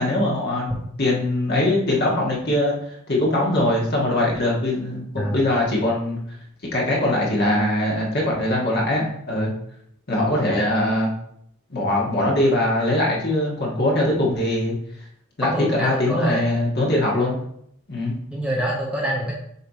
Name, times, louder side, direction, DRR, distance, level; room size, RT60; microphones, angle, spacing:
voice 1, 0.0-2.7 3.1-6.2 6.7-9.5 10.1-11.1 11.7-14.8 15.4-17.4 17.9-18.1, left 1 dB, 45° left, -3 dB, 1.6 m, -22 dB
voice 2, 5.2-5.5 15.5-16.4 17.0-17.1 18.3-19.3, right 1 dB, 5° right, -3 dB, 0.7 m, -26 dB
6.8 x 3.3 x 4.2 m, 0.72 s
head